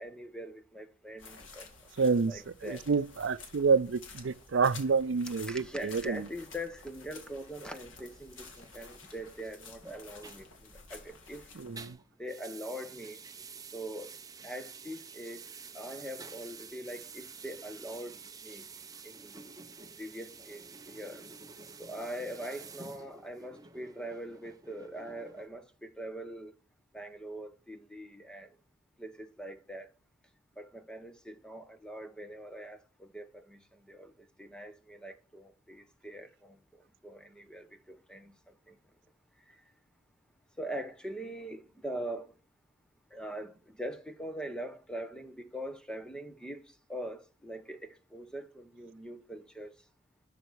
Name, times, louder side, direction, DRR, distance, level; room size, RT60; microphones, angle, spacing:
voice 1, 0.0-1.7 2.0-2.8 5.5-11.4 12.2-13.2 13.7-14.1 14.4-15.4 15.7-18.2 18.4-18.7 19.0-19.3 20.0-20.6 20.9-21.2 21.8-26.5 26.9-28.5 29.0-29.9 30.6-36.6 37.0-38.3 38.7-38.8 40.6-42.3 43.1-49.7, right 1 dB, 5° left, 1.1 m, -42 dB
sound 1, 1.2-11.9, left 4 dB, 90° left, 2.9 m, -52 dB
voice 2, 2.0-6.3 11.6-12.0, right 5 dB, 70° right, 0.5 m, -28 dB
sound 2, 7.2-11.3 11.6-25.5, right 5 dB, 20° right, 0.8 m, -50 dB
12.5 x 5.6 x 6.3 m
head